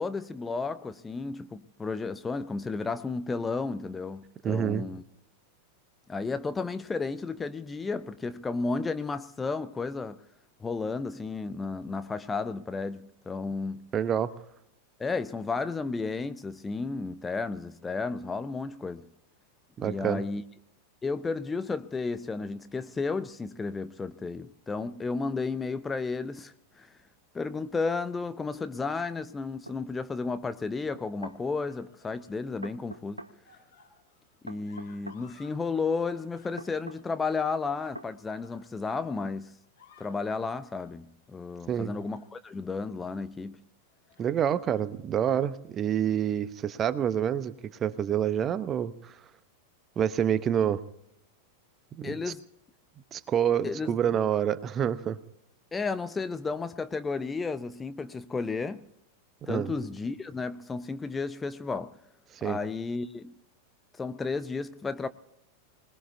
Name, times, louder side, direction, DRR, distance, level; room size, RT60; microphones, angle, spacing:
voice 1, 0.0-5.0 6.1-10.2 10.6-13.9 15.0-19.0 19.8-20.4 21.0-26.9 27.3-33.2 34.4-39.5 40.0-43.6 52.0-52.4 53.6-54.0 55.7-58.8 59.5-61.9 62.4-63.3 64.0-65.1, left 4 dB, 15° left, 0.6 m, -33 dB
voice 2, 4.4-4.9 13.9-14.3 19.8-20.2 41.7-41.9 44.2-47.5 47.8-49.1 50.0-50.8 51.9-52.3 53.1-55.2 59.5-59.7 62.3-62.6, right 9 dB, 25° right, 0.8 m, -27 dB
sound 1, 29.7-29.8 30.9-31.4 32.6-33.4 34.5-35.2 36.6-37.0 37.9-38.1, right 1 dB, 85° right, 0.8 m, -43 dB
sound 2, 31.3-32.5 32.8-35.6 35.8-39.3 39.6-40.2 40.7-41.0 41.6-42.6 43.0-43.2 43.8-44.4 44.7-44.9 46.0-46.7 47.5-47.6, left 4 dB, 55° left, 6.8 m, -61 dB
25.5 x 19.5 x 2.7 m
figure-of-eight pair, 90°, 0 cm